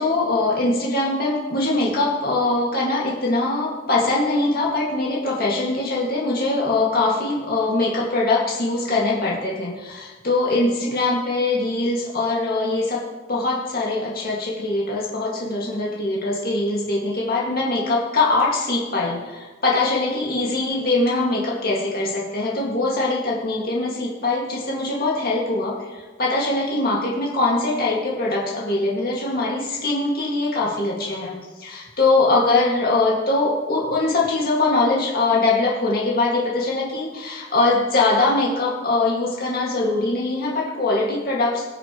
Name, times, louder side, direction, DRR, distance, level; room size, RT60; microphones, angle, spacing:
voice 1, 0.0-13.0 13.3-41.6, left 2 dB, 50° left, -4 dB, 1.9 m, -22 dB
20.0 x 6.9 x 3.0 m, 1.3 s
head